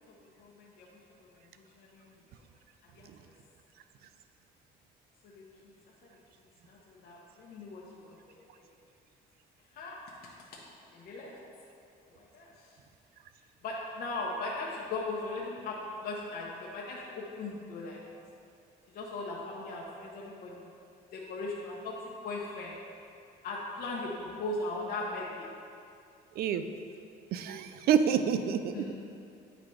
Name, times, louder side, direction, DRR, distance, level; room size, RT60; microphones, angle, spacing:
voice 1, 0.1-0.9 1.2-1.3 1.8-2.1 2.8-3.1 5.2-5.7 6.4-8.7 9.7-10.0 10.2-10.6 10.9-11.3 12.0-12.8 13.6-18.0 18.9-20.6 21.1-22.7 23.4-25.5 28.7-28.9, left 2 dB, 60° left, -4 dB, 0.9 m, -39 dB
voice 2, 26.4-26.7 27.3-28.8, right 8 dB, 65° right, 9 dB, 0.4 m, -27 dB
9.3 x 4.0 x 3.2 m, 2.5 s
cardioid pair, 110°, 17 cm